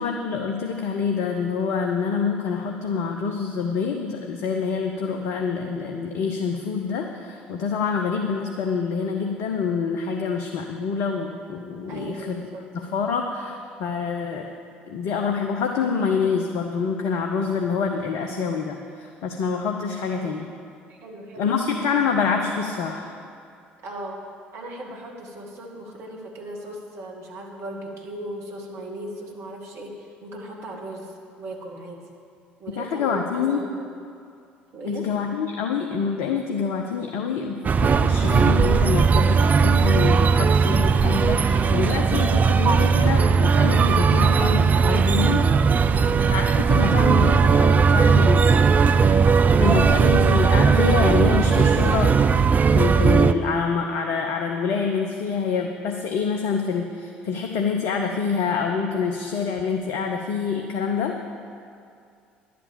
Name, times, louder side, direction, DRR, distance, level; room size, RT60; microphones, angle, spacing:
voice 1, 0.0-12.4 12.7-14.5 14.9-20.5 21.4-23.1 32.7-33.6 34.9-45.5 46.2-48.8 49.6-61.2, left 5 dB, 55° left, 3 dB, 0.8 m, -26 dB
voice 2, 11.9-12.6 20.1-20.4 20.9-21.6 23.8-24.2 24.5-32.0 32.6-33.9 34.7-35.1 45.9-46.2, right 1 dB, 50° right, 0 dB, 2.0 m, -37 dB
sound 1, 37.6-53.3, right 5 dB, 30° right, 0.5 m, -18 dB
11.0 x 8.6 x 7.1 m, 2.4 s
figure-of-eight pair, 55°, 6 cm